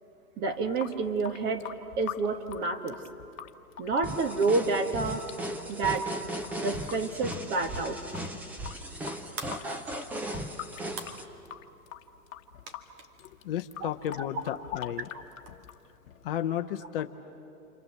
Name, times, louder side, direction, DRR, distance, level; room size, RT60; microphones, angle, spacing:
voice 1, 0.4-3.0 3.8-5.3 5.7-6.2 6.6-8.0 13.8-13.9, right 3 dB, 25° right, 6 dB, 1.6 m, -29 dB
Water tap faucet / Sink (filling or washing) / Drip, 0.5-16.5, left 10 dB, 60° left, 1.2 m, -45 dB
sound 1, 4.0-11.2, right 1 dB, 5° right, 0.5 m, -37 dB
sound 2, 6.8-16.0, right 4 dB, 40° right, 2.4 m, -50 dB
voice 2, 13.2-15.1 16.2-17.1, left 11 dB, 40° left, 7 dB, 0.8 m, -33 dB
28.5 x 27.0 x 7.6 m, 2.7 s
hypercardioid pair, 135°, 44 cm